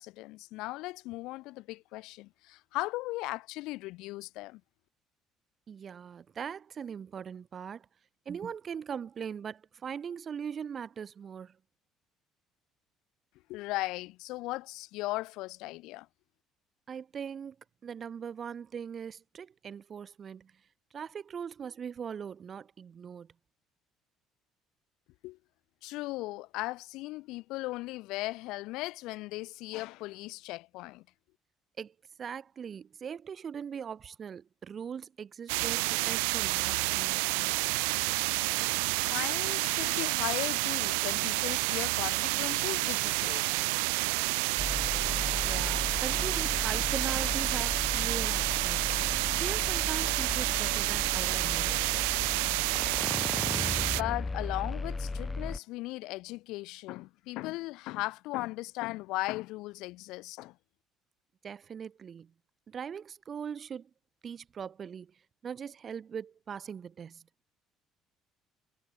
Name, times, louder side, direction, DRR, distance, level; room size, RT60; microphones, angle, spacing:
voice 1, 0.0-4.6 13.5-16.1 25.2-25.4 25.8-31.0 38.6-38.7 39.0-43.5 53.8-60.6, left 20 dB, 65° left, 3.7 m, -37 dB
voice 2, 5.7-7.9 8.3-11.6 16.9-17.6 17.8-20.5 20.9-23.3 31.8-37.6 45.3-48.9 49.4-51.9 61.4-62.3 62.7-63.9 64.2-65.1 65.4-67.2, right 7 dB, 40° right, 2.4 m, -40 dB
sound 1, 35.5-54.0, right 34 dB, 70° right, 0.5 m, -29 dB
sound 2, 44.6-55.6, left 3 dB, 20° left, 6.0 m, -36 dB
figure-of-eight pair, 55°, 0 cm